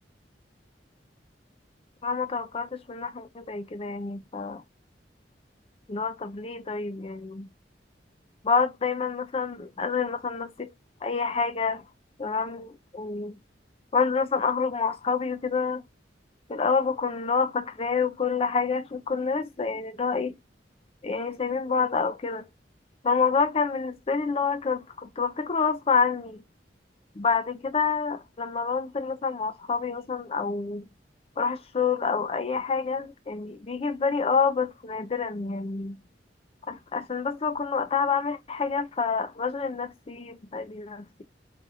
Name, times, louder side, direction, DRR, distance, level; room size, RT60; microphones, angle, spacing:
voice 1, 2.0-4.6 5.9-7.5 8.4-10.7 11.0-11.8 12.2-13.4 13.9-15.8 16.5-20.4 21.0-22.4 23.0-26.4 27.2-30.9 31.4-36.0 36.7-41.2, left 5 dB, 35° left, 0.5 m, -28 dB
2.5 x 2.4 x 4.1 m
head